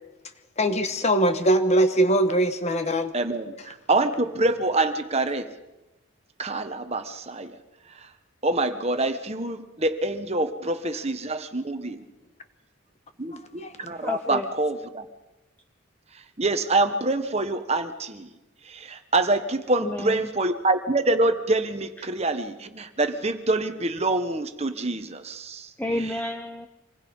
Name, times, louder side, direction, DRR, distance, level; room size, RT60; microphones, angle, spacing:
voice 1, 0.6-3.1 13.6-13.7, right 1 dB, 30° left, 8 dB, 1.4 m, -21 dB
voice 2, 3.1-5.5 6.4-7.5 8.4-12.0 13.2-15.0 16.4-18.3 18.7-25.7, right 2 dB, 30° right, 8 dB, 1.3 m, -26 dB
voice 3, 13.9-14.5 19.8-20.3 25.8-26.7, left 1 dB, 10° left, 5 dB, 0.8 m, -30 dB
26.5 x 20.5 x 5.5 m, 1.0 s
head